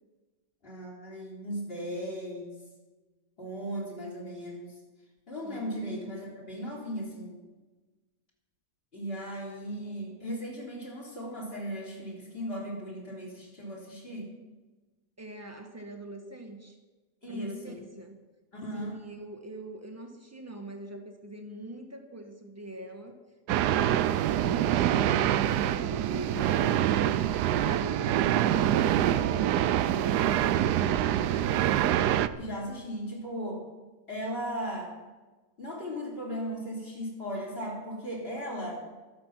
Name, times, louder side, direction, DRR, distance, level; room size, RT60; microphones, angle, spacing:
voice 1, 0.6-2.5 3.4-4.8 5.3-7.4 8.9-14.3 17.2-17.8 18.5-19.0 32.4-33.6 34.1-34.9 35.6-38.7, equal, 35° left, -2 dB, 4.1 m, -37 dB
voice 2, 15.2-16.8 17.3-18.2 18.7-23.2 25.4-27.0 27.5-29.5 30.0-31.7, right 1 dB, 10° right, 3 dB, 1.5 m, -43 dB
sound 1, 23.5-32.3, right 11 dB, 90° right, 1.2 m, -25 dB
23.5 x 8.0 x 5.9 m, 1.2 s
omnidirectional pair, 1.7 m